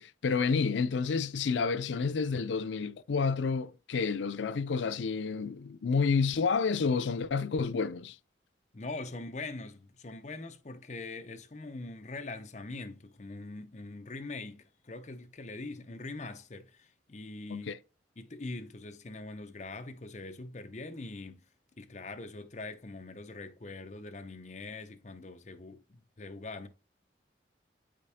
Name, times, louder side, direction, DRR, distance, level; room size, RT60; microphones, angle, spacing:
voice 1, 0.0-8.2 17.5-17.8, left 5 dB, 80° left, 0.4 m, -30 dB
voice 2, 8.7-17.7 18.2-21.4 21.8-26.7, left 2 dB, 40° left, 0.7 m, -43 dB
8.2 x 5.1 x 2.8 m
head